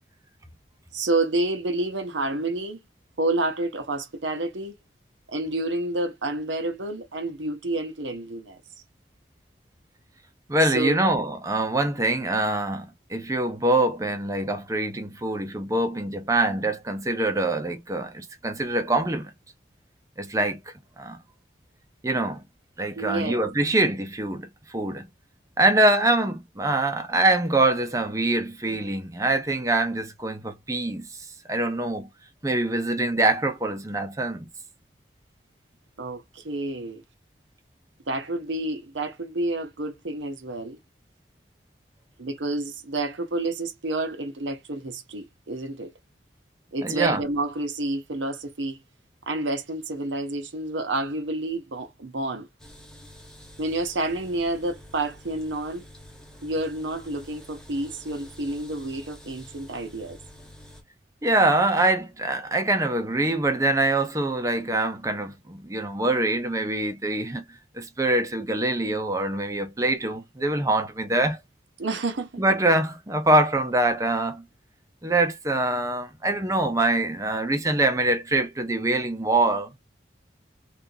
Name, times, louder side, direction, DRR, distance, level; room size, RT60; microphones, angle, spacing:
voice 1, 0.9-2.8 3.2-4.7 5.3-8.6 10.6-11.0 23.0-23.4 36.0-37.0 38.1-40.8 42.2-45.9 46.7-48.8 49.3-52.5 53.6-55.8 56.4-60.2 71.8-72.4, right 2 dB, 90° right, 0.8 m, -29 dB
voice 2, 10.5-19.3 20.2-20.6 21.0-21.2 22.0-22.4 22.8-25.1 25.6-32.1 32.4-34.5 46.8-47.2 61.2-67.4 67.7-71.4 72.4-74.5 75.0-79.8, right 2 dB, 20° right, 0.6 m, -24 dB
sound 1, 52.6-60.8, left 1 dB, 5° left, 0.9 m, -48 dB
3.6 x 2.5 x 2.7 m
head